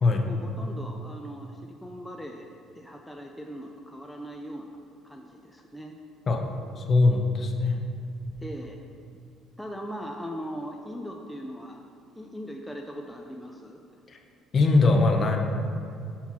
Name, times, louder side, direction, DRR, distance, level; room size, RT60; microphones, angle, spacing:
voice 1, 0.2-2.5 2.7-4.7 5.0-5.9 8.4-8.8 9.6-11.8 12.1-13.8, equal, 5° left, 1 dB, 0.5 m, -39 dB
voice 2, 6.8-7.8 14.1-14.2 14.5-15.4, left 3 dB, 40° left, 3 dB, 0.8 m, -21 dB
5.7 x 4.3 x 6.0 m, 2.5 s
cardioid pair, 105°, 0 cm